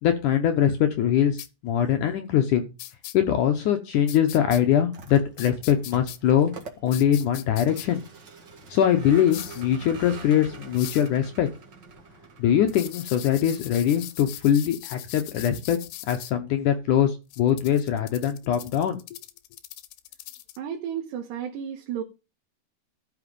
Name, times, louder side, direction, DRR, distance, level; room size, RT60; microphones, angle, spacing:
voice 1, 0.0-2.7 3.1-6.5 6.8-8.0 8.7-11.5 12.4-15.8 16.0-19.0, left 10 dB, 70° left, 2.0 m, -22 dB
sound 1, 1.4-1.5 2.8-3.1 4.1-4.6 5.4-6.2 6.9-7.9 9.3-9.6 10.8-11.1 12.7-16.3 17.3-20.6, left 15 dB, 90° left, 2.9 m, -40 dB
Vehicle, 4.8-14.2, right 3 dB, 40° right, 1.8 m, -45 dB
voice 2, 20.6-22.0, right 9 dB, 85° right, 3.4 m, -32 dB
13.5 x 6.0 x 5.3 m
omnidirectional pair, 4.7 m